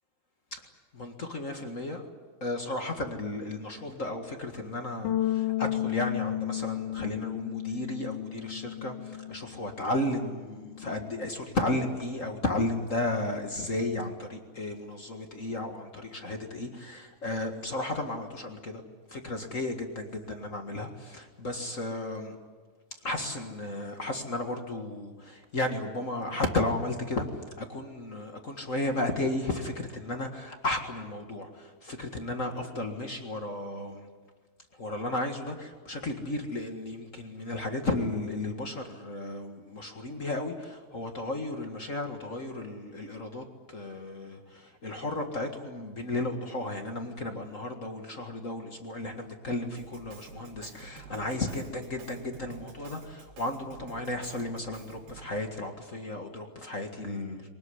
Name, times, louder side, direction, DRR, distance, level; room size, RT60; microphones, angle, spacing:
voice 1, 0.9-2.0 2.4-18.8 19.1-22.3 23.0-27.3 27.6-34.0 34.8-57.5, left 2 dB, 40° left, 4 dB, 1.1 m, -34 dB
Bass guitar, 5.0-11.3, left 13 dB, 85° left, 2.9 m, -33 dB
Drum kit, 49.8-55.4, right 4 dB, 75° right, 5.2 m, -49 dB
24.0 x 19.0 x 9.8 m, 1.4 s
omnidirectional pair, 4.3 m